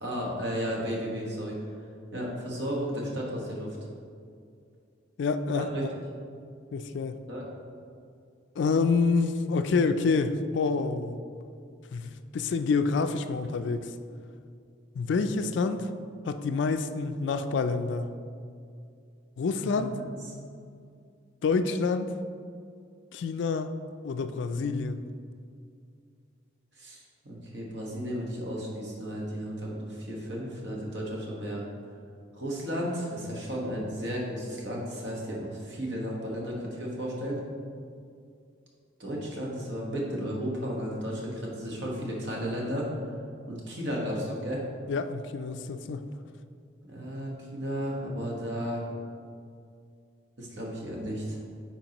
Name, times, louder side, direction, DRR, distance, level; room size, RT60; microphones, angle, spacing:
voice 1, 0.0-1.6 2.1-3.8 5.5-5.8 7.3-7.4 19.6-20.1 26.8-31.6 32.3-37.4 39.0-42.9 43.5-44.6 46.9-48.8 50.4-51.4, equal, 60° right, -3 dB, 1.3 m, -34 dB
voice 2, 5.2-5.9 6.7-7.2 8.6-11.2 11.9-13.9 14.9-15.9 16.3-18.1 19.4-19.9 21.4-22.1 23.1-23.7 24.0-25.0 44.9-46.0, left 4 dB, 60° left, 9 dB, 0.3 m, -27 dB
9.1 x 4.5 x 2.9 m, 2.3 s
head